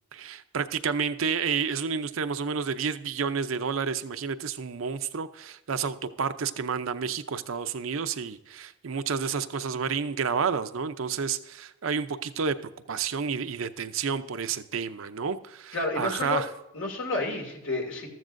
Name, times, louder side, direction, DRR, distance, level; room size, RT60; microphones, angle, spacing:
voice 1, 0.1-12.6 12.9-16.5, right 6 dB, 80° right, 11 dB, 0.6 m, -30 dB
voice 2, 15.7-16.5 16.7-18.1, left 2 dB, 70° left, 2 dB, 2.4 m, -30 dB
13.5 x 13.5 x 2.6 m, 0.92 s
head